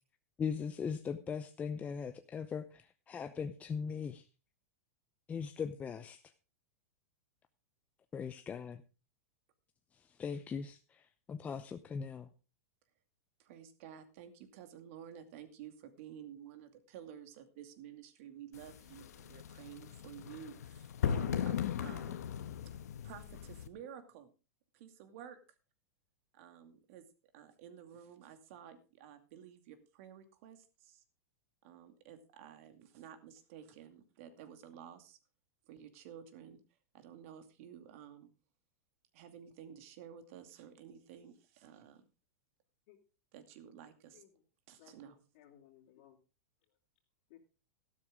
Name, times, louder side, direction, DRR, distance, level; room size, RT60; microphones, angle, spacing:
voice 1, 0.4-4.3 5.3-6.2 8.1-8.8 9.9-12.3, left 6 dB, 15° left, 8 dB, 0.7 m, -40 dB
voice 2, 13.4-22.1 23.0-24.3 24.7-25.4 26.3-27.1 27.3-31.0 31.6-35.2 35.7-36.6 36.9-38.3 39.1-42.1 43.3-44.2 44.7-45.2, right 9 dB, 55° right, 8 dB, 2.4 m, -52 dB
sound 1, 18.5-23.7, left 8 dB, 85° left, 1.2 m, -38 dB
voice 3, 44.8-46.2 47.3-47.4, left 10 dB, 55° left, -3 dB, 3.0 m, -61 dB
13.0 x 12.0 x 3.6 m, 0.32 s
supercardioid pair, 140°, 9 cm